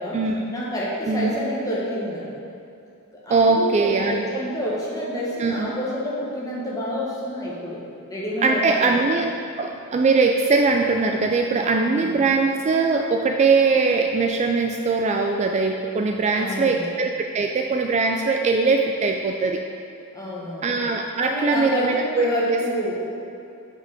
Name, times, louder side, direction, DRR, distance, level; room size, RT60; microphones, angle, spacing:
voice 1, 0.5-2.3 3.2-7.8 8.1-9.0 11.9-12.1 16.4-16.9 20.1-20.7 21.2-23.3, equal, 15° left, -6 dB, 1.4 m, -28 dB
voice 2, 3.3-4.2 5.4-5.7 8.4-19.6 20.6-22.6, right 4 dB, 30° right, 3 dB, 0.3 m, -21 dB
6.2 x 5.3 x 5.0 m, 2.7 s
head